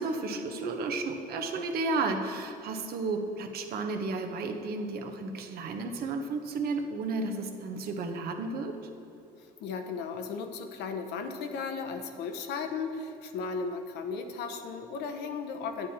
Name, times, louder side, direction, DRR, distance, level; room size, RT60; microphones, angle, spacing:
voice 1, 0.0-8.7, right 3 dB, 65° right, 5 dB, 1.1 m, -33 dB
voice 2, 9.4-15.9, left 5 dB, 85° left, 7 dB, 0.9 m, -36 dB
9.2 x 8.7 x 4.2 m, 2.8 s
cardioid pair, 110°, 17 cm